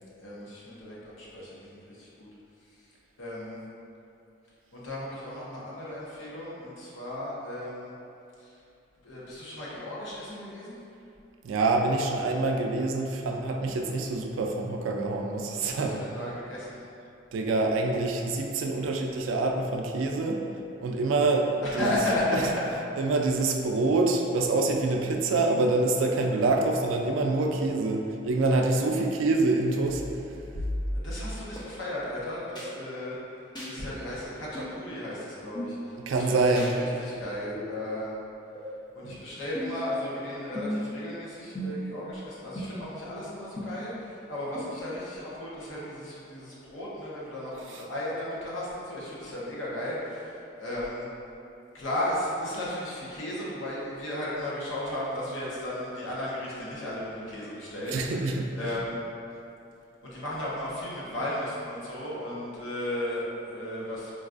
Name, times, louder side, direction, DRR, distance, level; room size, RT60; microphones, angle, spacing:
voice 1, 0.2-2.3 3.2-3.6 4.7-7.9 8.4-8.6 9.0-10.8 15.5-16.8 21.6-22.6 30.9-33.2 33.7-36.6 37.0-38.2 38.9-51.1 51.7-58.0 58.5-59.0 60.0-64.1, left 1 dB, 85° left, -7 dB, 0.8 m, -35 dB
voice 2, 11.4-16.0 17.3-20.4 20.8-21.9 22.3-22.4 23.0-30.0 36.1-36.7 39.0-39.2 57.9-58.5, right 3 dB, 85° right, 2 dB, 0.3 m, -26 dB
sound 1, 29.9-31.6 32.5-32.7 33.5-33.7 34.5-34.7 35.5-35.7 36.5-36.7 37.5-37.7 38.5-38.7 39.5-39.9 40.5-40.9 41.5-42.0 42.5-42.6 43.6-43.7 44.5-44.6, equal, 20° left, 0.5 m, -34 dB
3.8 x 2.3 x 2.4 m, 2.7 s
head